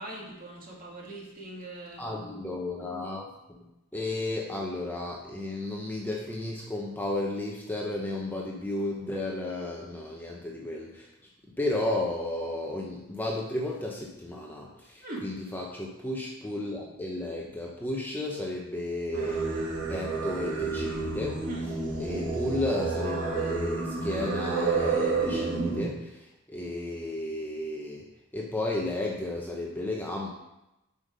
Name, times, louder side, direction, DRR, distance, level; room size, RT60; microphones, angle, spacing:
voice 1, 0.0-2.0 15.0-15.3 21.4-21.7, right 2 dB, 40° right, -2 dB, 2.1 m, -40 dB
voice 2, 2.0-3.6 3.9-11.1 11.6-19.6 19.9-21.3 22.0-28.0 28.3-30.3, left 1 dB, 10° left, -1 dB, 0.8 m, -33 dB
Singing, 19.1-25.9, right 4 dB, 70° right, 2.2 m, -30 dB
7.9 x 5.2 x 5.2 m, 0.92 s
head